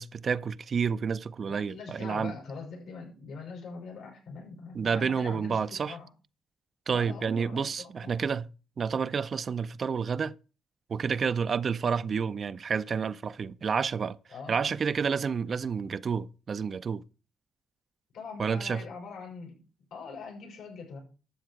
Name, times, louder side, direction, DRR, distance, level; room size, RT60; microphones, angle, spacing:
voice 1, 0.0-2.3 4.7-6.0 6.9-8.5 8.8-10.3 10.9-14.2 14.5-17.0 18.4-18.8, right 6 dB, 55° right, 0.5 m, -29 dB
voice 2, 1.5-6.1 6.9-8.2 14.3-14.8 18.1-19.6 19.9-21.0, left 4 dB, 85° left, 6.3 m, -43 dB
12.5 x 7.4 x 4.7 m
cardioid pair, 65°, 0 cm